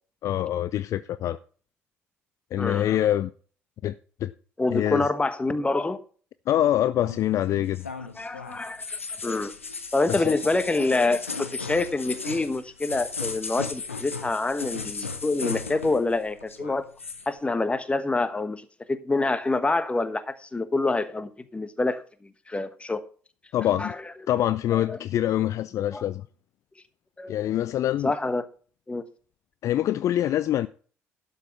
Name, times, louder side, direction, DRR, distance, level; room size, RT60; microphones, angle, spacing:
voice 1, 0.2-1.4 2.5-3.3 3.8-4.0 4.2-4.3 4.7-5.1 6.5-7.9 10.1-10.3 23.5-23.9 24.3-26.3 27.3-28.1 29.6-30.7, left 12 dB, 50° left, 0.4 m, -25 dB
voice 2, 4.6-6.0 8.2-9.5 9.9-16.9 17.3-22.0 22.5-23.0 23.8-24.0 24.9-25.0 25.9-26.0 27.2-27.4 28.0-28.4 28.9-29.0, left 2 dB, 15° left, 1.2 m, -26 dB
sound 1, 7.0-16.1 16.4-17.3, left 4 dB, 90° left, 0.8 m, -36 dB
12.0 x 5.5 x 6.1 m
figure-of-eight pair, 50°, 7 cm